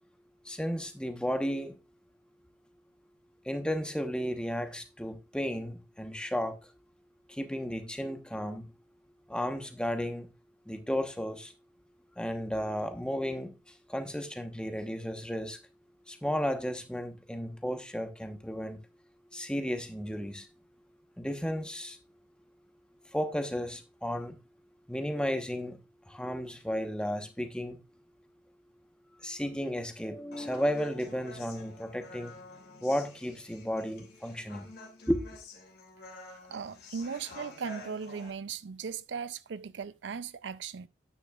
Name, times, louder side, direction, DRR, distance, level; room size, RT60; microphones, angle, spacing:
voice 1, 0.4-1.8 3.5-6.6 7.3-8.7 9.3-10.3 10.7-11.5 12.2-13.5 13.9-15.6 16.1-18.8 19.3-20.5 21.2-22.0 23.1-24.4 24.9-25.8 26.1-27.8 29.2-32.3 32.8-34.7 35.1-35.2, equal, 5° left, 1.0 m, -33 dB
Human voice, 30.3-38.3, left 2 dB, 55° left, 2.5 m, -49 dB
voice 2, 36.3-40.9, right 6 dB, 70° right, 0.4 m, -38 dB
10.0 x 9.2 x 2.3 m
head